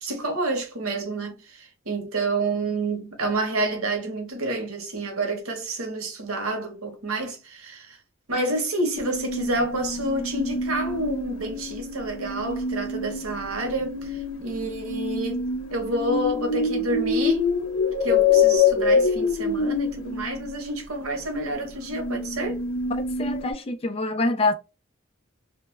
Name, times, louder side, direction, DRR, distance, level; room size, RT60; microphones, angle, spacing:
voice 1, 0.0-8.0 8.3-17.5 18.0-22.6, right 2 dB, 85° right, 0.8 m, -29 dB
sound 1, 8.9-20.6 21.5-23.5, left 4 dB, 75° left, 0.7 m, -26 dB
voice 2, 23.2-24.5, left 2 dB, 25° left, 0.3 m, -25 dB
2.2 x 2.1 x 3.1 m
head